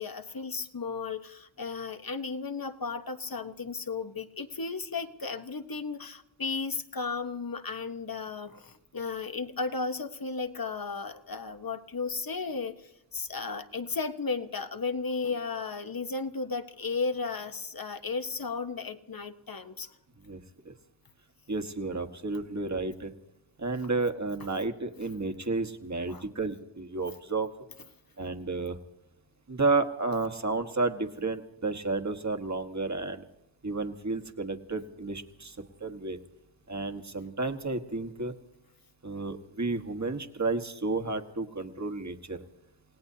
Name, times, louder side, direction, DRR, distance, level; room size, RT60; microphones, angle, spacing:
voice 1, 0.0-19.9 26.1-26.2, left 4 dB, 45° left, 8 dB, 1.1 m, -34 dB
voice 2, 21.5-23.1 23.6-27.5 28.2-28.8 29.5-33.2 33.6-36.2 36.7-38.3 39.0-42.4, right 3 dB, 35° right, 6 dB, 1.5 m, -31 dB
29.0 x 17.5 x 2.8 m, 0.91 s
cardioid pair, 40°, 47 cm